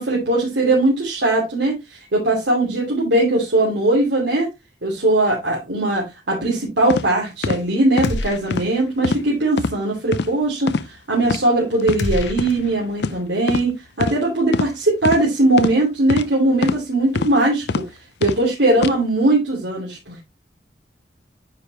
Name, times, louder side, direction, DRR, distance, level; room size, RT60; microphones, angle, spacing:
voice 1, 0.0-4.5 4.8-17.8 18.2-20.2, right 2 dB, 80° right, -4 dB, 2.8 m, -20 dB
sound 1, 6.9-7.0 7.4-7.6 8.0-8.1 8.5-8.7 9.0-9.2 9.6-9.7 10.1-10.3 10.7-10.9 11.2-11.4 11.8-12.0 12.4-12.5 13.0-13.2 13.5-13.7 14.0-14.2 14.5-14.7 15.0-15.2 15.6-15.7 16.1-16.3 16.6-16.8 17.2-17.3 17.7-17.8 18.2-18.4 18.8-18.9, left 4 dB, 65° left, 0.5 m, -23 dB
sound 2, 8.0-8.9 9.2-9.3 12.0-13.3, left 2 dB, 85° left, 1.0 m, -28 dB
9.3 x 5.1 x 3.1 m, 0.22 s
head